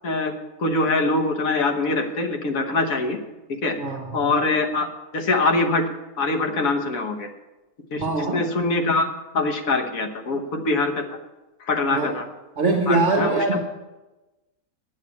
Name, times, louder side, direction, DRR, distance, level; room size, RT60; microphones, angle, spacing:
voice 1, 0.0-0.3 0.6-3.2 3.5-3.8 4.1-4.9 5.1-5.9 6.2-7.3 7.9-9.1 9.3-11.2 11.6-12.2 12.9-13.6, left 3 dB, 70° left, 5 dB, 1.6 m, -23 dB
voice 2, 3.8-4.3 8.0-8.4 11.9-12.1 12.6-13.6, right 3 dB, 50° right, 1 dB, 1.5 m, -22 dB
9.7 x 7.3 x 8.3 m, 1.1 s
omnidirectional pair, 1.5 m